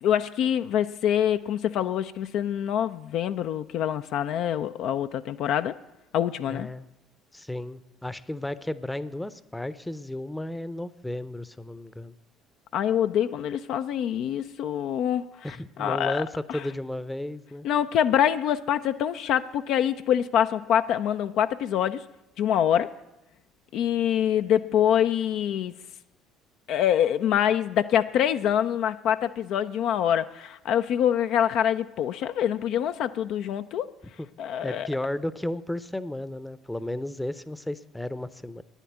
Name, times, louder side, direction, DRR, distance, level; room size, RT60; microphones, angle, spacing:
voice 1, 0.0-5.8 6.1-6.7 12.7-15.3 15.8-16.2 16.5-16.6 17.6-22.0 22.4-22.9 23.7-25.7 26.7-33.9 34.4-34.9, left 10 dB, 60° left, 9 dB, 0.4 m, -25 dB
voice 2, 6.4-6.9 7.3-12.1 15.4-17.7 34.2-34.3 34.6-38.6, left 1 dB, 10° left, 16 dB, 0.7 m, -33 dB
9.9 x 8.1 x 9.3 m, 0.95 s
figure-of-eight pair, 55°, 0 cm